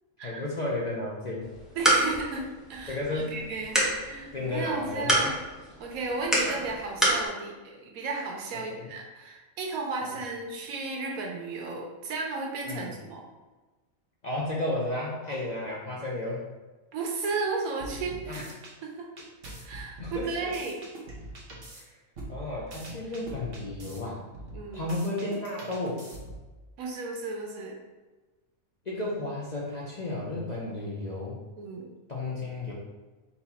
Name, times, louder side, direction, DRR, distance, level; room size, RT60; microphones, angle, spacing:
voice 1, 0.2-1.5 2.9-3.4 4.3-5.4 8.7-8.9 10.0-10.2 12.7-12.9 14.2-16.4 18.3-18.5 20.0-20.5 21.7-21.9 22.3-24.2 24.7-26.0 28.9-31.4 32.1-32.7, left 2 dB, 45° left, -5 dB, 0.6 m, -33 dB
sound 1, 1.4-7.3, right 1 dB, ahead, 0.7 m, -29 dB
voice 2, 1.7-5.3 5.8-13.3 16.9-18.4 18.8-19.1 19.6-20.8 24.5-24.8 26.8-27.8 31.6-31.9, right 3 dB, 80° right, 0 dB, 1.3 m, -34 dB
sound 2, 17.8-18.7 19.2-21.8 22.2-24.0 24.3-26.5, right 1 dB, 45° right, 1.1 m, -43 dB
4.2 x 2.8 x 4.1 m, 1.2 s
omnidirectional pair, 1.5 m